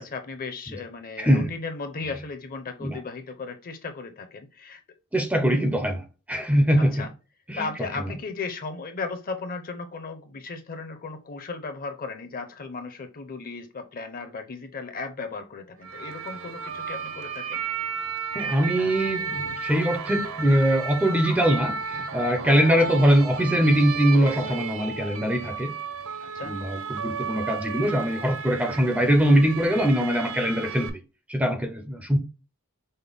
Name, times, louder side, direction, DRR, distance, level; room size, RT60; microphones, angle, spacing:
voice 1, 0.0-4.8 6.9-7.1 7.6-17.6 22.6-22.7 26.3-26.6, left 4 dB, 40° left, 0.6 m, -36 dB
voice 2, 1.2-1.5 2.0-2.1 2.8-3.0 5.1-7.1 7.5-8.1 18.3-25.7 26.4-31.0 31.3-32.2, equal, 5° right, 0.5 m, -22 dB
sound 1, 15.8-30.9, right 5 dB, 65° right, 0.6 m, -33 dB
5.4 x 2.1 x 3.4 m
head